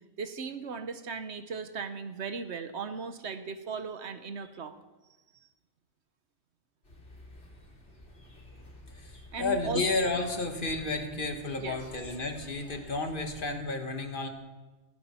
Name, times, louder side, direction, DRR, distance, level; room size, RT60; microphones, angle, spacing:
voice 1, 0.2-4.8 9.3-9.8 11.6-11.8, right 5 dB, 75° right, 10 dB, 1.2 m, -37 dB
sound 1, 6.8-13.6, left 1 dB, 85° left, 3.8 m, -51 dB
voice 2, 8.9-14.3, left 3 dB, 50° left, 5 dB, 1.6 m, -32 dB
15.5 x 15.5 x 4.4 m, 1.2 s
omnidirectional pair, 1.2 m